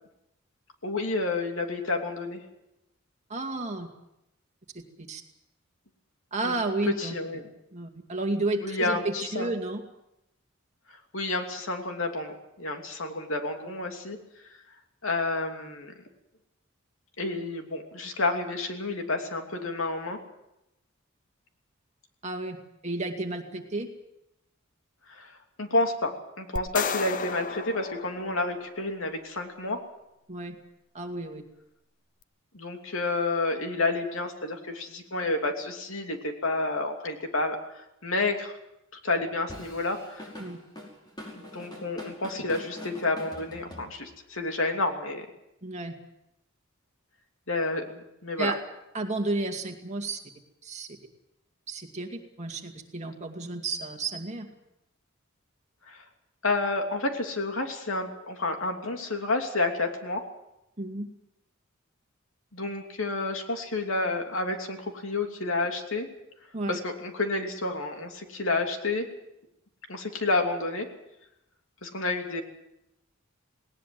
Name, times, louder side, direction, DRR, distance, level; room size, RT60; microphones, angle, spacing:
voice 1, 0.8-2.4 6.4-6.5 7.0-7.4 8.6-9.5 11.1-14.2 15.0-15.9 17.2-20.2 25.1-26.1 26.4-29.8 32.5-38.6 39.0-40.3 41.4-45.2 47.5-48.5 55.9-56.0 56.4-60.2 62.5-66.1 66.7-69.0 69.9-70.9 71.8-72.4, left 2 dB, 75° left, 4 dB, 2.9 m, -30 dB
voice 2, 3.3-3.9 4.7-5.2 6.3-7.2 7.7-9.8 22.2-22.6 22.8-23.9 30.3-30.6 30.9-31.4 40.4-40.6 45.6-45.9 48.4-48.6 48.9-50.2 50.6-50.9 51.7-54.5 60.8-61.1 66.5-66.8, right 2 dB, 35° right, 4 dB, 2.4 m, -32 dB
sound 1, 26.6-28.9, left 6 dB, 40° left, 0.7 m, -34 dB
Drum kit / Drum, 39.5-44.3, left 1 dB, 20° left, 5.3 m, -43 dB
19.0 x 19.0 x 7.8 m, 0.87 s
head